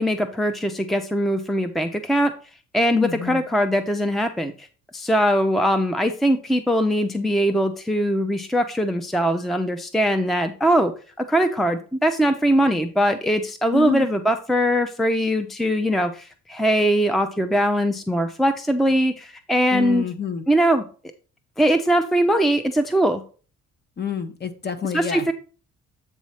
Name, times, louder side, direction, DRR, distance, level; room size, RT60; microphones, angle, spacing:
voice 1, 0.0-2.3 2.7-4.7 4.9-10.9 11.2-20.0 20.5-20.8 21.6-23.2 24.9-25.3, equal, ahead, 8 dB, 0.5 m, -21 dB
voice 2, 2.9-3.4 13.7-14.1 19.7-20.4 24.0-25.3, left 6 dB, 35° left, 9 dB, 1.0 m, -27 dB
8.1 x 3.1 x 5.5 m, 0.38 s
cardioid pair, 90°, 30 cm